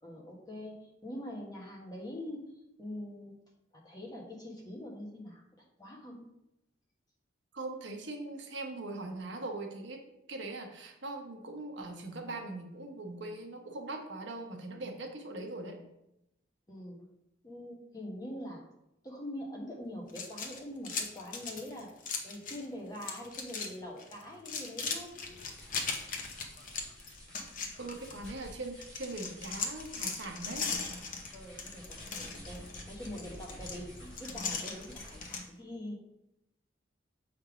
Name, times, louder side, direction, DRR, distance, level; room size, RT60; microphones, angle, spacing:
voice 1, 0.0-3.4 3.7-6.3 16.7-17.0 17.4-18.7 19.0-25.2 31.3-36.0, left 1 dB, 20° left, -2 dB, 1.2 m, -44 dB
voice 2, 7.5-10.0 10.3-15.8 27.8-30.7, right 2 dB, 75° right, 3 dB, 1.0 m, -41 dB
sound 1, 20.1-22.7 22.9-23.7 24.0-28.5 28.8-35.4, left 5 dB, 45° left, 0.8 m, -38 dB
sound 2, 25.1-35.5, equal, 5° left, 2.2 m, -51 dB
6.5 x 3.6 x 4.9 m, 0.85 s
head